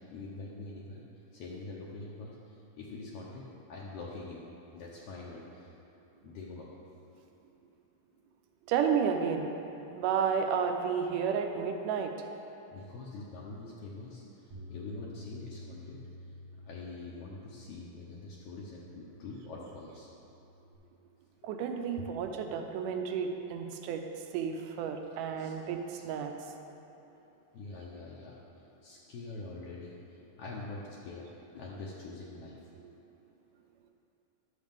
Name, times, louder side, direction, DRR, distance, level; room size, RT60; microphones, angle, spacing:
voice 1, 0.1-1.0 1.3-2.3 2.7-4.5 4.7-5.7 6.2-6.7 12.7-14.2 14.7-16.0 16.7-20.1 25.4-25.5 25.9-26.0 27.5-28.4 28.8-29.9 30.4-32.6, left 3 dB, 80° left, -5 dB, 1.3 m, -44 dB
voice 2, 8.7-9.5 9.9-12.1 21.4-24.0 24.3-26.3 32.8-32.9, right 7 dB, 85° right, 4 dB, 2.2 m, -31 dB
Bass guitar, 14.5-20.8, left 1 dB, 65° right, 2.2 m, -50 dB
11.5 x 6.5 x 3.5 m, 3.0 s
omnidirectional pair, 3.7 m